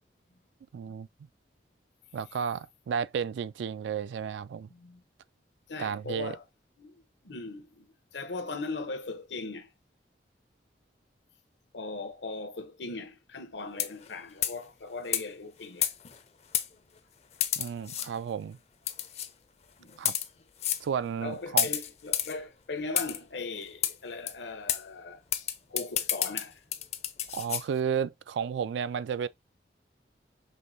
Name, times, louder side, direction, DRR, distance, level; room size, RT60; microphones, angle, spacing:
voice 1, 0.7-1.1 2.1-4.7 5.8-6.4 17.6-18.6 20.0-20.1 20.8-21.7 27.3-29.3, right 7 dB, 85° right, 0.3 m, -32 dB
voice 2, 4.7-5.0 5.7-6.4 6.8-7.9 8.1-9.7 11.7-15.9 19.8-20.0 21.2-26.6, left 3 dB, 80° left, 0.9 m, -39 dB
sound 1, 13.7-14.1 14.4-14.6 15.1-15.2 15.8-16.2 16.5-16.7 17.4-18.1 18.9-19.3 19.9-20.3 20.6-20.8 21.6-22.3 23.0-23.2 23.8-23.9 24.3-24.4 24.7-24.8 25.3-27.6, left 11 dB, 35° left, 0.4 m, -30 dB
5.5 x 3.1 x 2.7 m
head